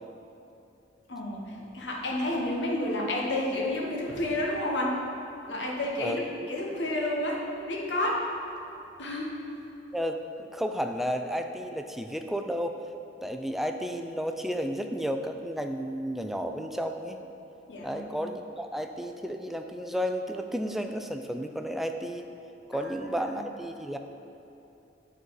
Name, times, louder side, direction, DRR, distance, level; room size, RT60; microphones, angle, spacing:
voice 1, 1.1-5.0 5.5-8.2 9.0-9.3 17.7-18.2 22.7-22.9 23.4-23.5, left 1 dB, 80° left, -2 dB, 1.2 m, -30 dB
voice 2, 6.0-6.5 9.9-12.8 13.2-17.2 17.8-22.3 22.7-24.0, equal, ahead, 5 dB, 0.3 m, -32 dB
8.9 x 4.1 x 4.6 m, 2.8 s
head